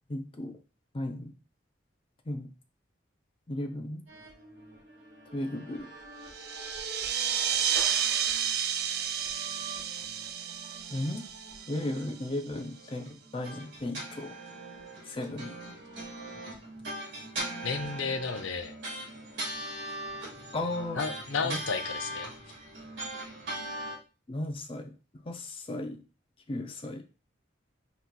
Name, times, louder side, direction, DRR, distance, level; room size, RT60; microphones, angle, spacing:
voice 1, 0.1-0.6 0.9-1.3 2.3-2.5 3.5-4.1 5.3-5.9 10.9-11.3 11.7-14.3 15.0-15.6 20.5-21.0 21.4-21.6 24.3-24.9 25.2-26.0 26.5-27.0, left 1 dB, 25° left, 5 dB, 0.5 m, -35 dB
sound 1, 4.1-24.0, right 1 dB, 75° right, 1.9 m, -42 dB
sound 2, 6.3-12.4, right 8 dB, 55° right, 0.3 m, -31 dB
voice 2, 17.6-18.7 21.0-22.3, left 4 dB, 80° left, 7 dB, 0.6 m, -32 dB
4.3 x 3.9 x 2.2 m, 0.33 s
head